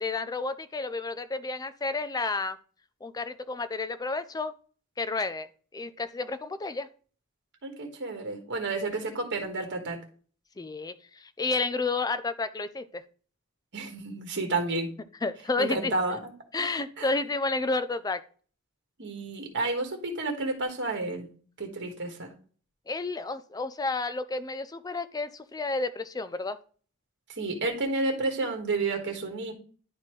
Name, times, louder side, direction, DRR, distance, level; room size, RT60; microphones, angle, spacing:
voice 1, 0.0-2.6 3.0-4.5 5.0-6.9 10.6-13.0 15.2-15.9 16.5-18.2 22.9-26.6, left 3 dB, 15° left, 13 dB, 0.4 m, -31 dB
voice 2, 7.6-10.0 13.7-14.9 15.6-16.3 17.0-17.1 19.0-21.3 21.6-22.3 27.4-29.5, right 3 dB, 55° right, 3 dB, 1.6 m, -31 dB
10.5 x 4.2 x 3.2 m, 0.43 s
head